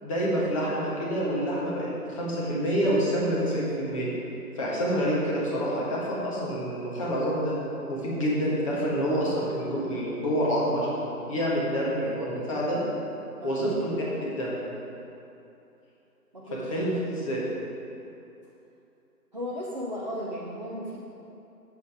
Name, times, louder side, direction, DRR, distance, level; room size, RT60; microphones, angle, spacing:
voice 1, 0.0-4.1 4.5-7.5 7.9-12.8 13.4-13.9 14.2-14.6 16.5-17.4, equal, 20° left, -5 dB, 1.5 m, -27 dB
voice 2, 19.3-21.0, equal, 30° right, -6 dB, 0.6 m, -35 dB
8.4 x 7.2 x 4.9 m, 2.8 s
figure-of-eight pair, 150°, 47 cm